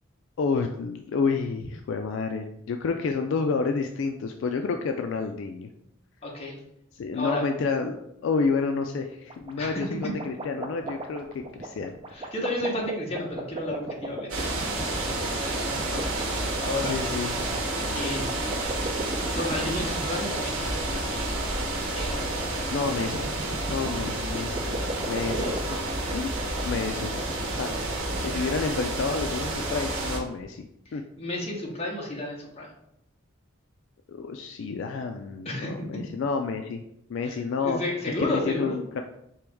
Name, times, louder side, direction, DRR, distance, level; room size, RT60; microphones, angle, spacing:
voice 1, 0.4-5.7 6.9-12.0 15.1-15.2 16.8-17.4 21.8-22.0 22.7-23.4 23.7-24.7 25.1-25.3 26.1-27.2 27.6-27.7 28.2-31.0 34.1-36.8 37.1-37.8 38.1-39.0, left 4 dB, 65° left, 5 dB, 0.3 m, -29 dB
voice 2, 6.2-6.6 7.1-7.4 9.6-10.1 12.1-14.4 14.7-17.0 17.9-18.3 19.3-21.0 21.9-22.3 25.2-25.6 30.9-32.7 35.4-36.0 37.2-37.3 37.6-38.8, left 1 dB, 30° left, -2 dB, 1.0 m, -32 dB
sound 1, 9.3-28.2, right 2 dB, 25° right, 0.4 m, -38 dB
sound 2, 14.3-30.2, right 2 dB, 80° right, 1.0 m, -30 dB
4.6 x 3.0 x 3.5 m, 0.78 s
head